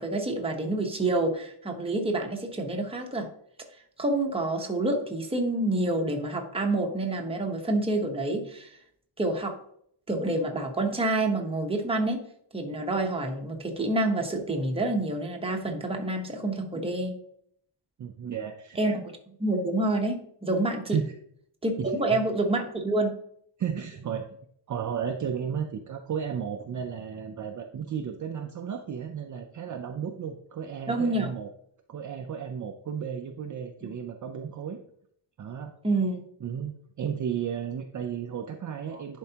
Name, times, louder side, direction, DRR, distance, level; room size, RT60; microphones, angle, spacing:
voice 1, 0.0-3.3 4.0-8.8 9.2-9.6 10.1-12.3 12.5-17.2 18.8-21.0 21.6-23.2 30.9-31.3 35.8-36.2, right 2 dB, 10° right, 1 dB, 1.0 m, -28 dB
voice 2, 18.0-18.8 20.9-21.1 21.8-22.2 23.6-24.2 24.7-31.5 31.9-34.8 35.4-35.7 36.4-39.2, right 7 dB, 40° right, 4 dB, 0.5 m, -33 dB
10.5 x 4.5 x 2.9 m, 0.67 s
wide cardioid pair, 155°, 45 cm